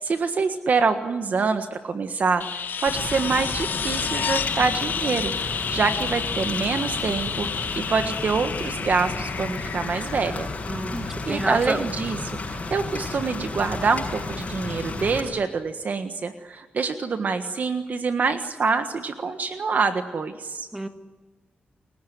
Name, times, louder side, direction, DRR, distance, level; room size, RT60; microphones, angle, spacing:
voice 1, 0.0-10.5 11.2-20.7, right 4 dB, 50° right, 8 dB, 1.5 m, -26 dB
sound 1, 2.4-11.1 13.4-13.5, left 6 dB, 65° left, 1.3 m, -30 dB
Rain, 2.9-15.2, left 3 dB, 40° left, 6.6 m, -33 dB
voice 2, 10.7-11.9 20.7-20.9, right 1 dB, 10° right, 8 dB, 1.8 m, -29 dB
30.0 x 17.5 x 9.5 m, 1.3 s
wide cardioid pair, 145°, 4 cm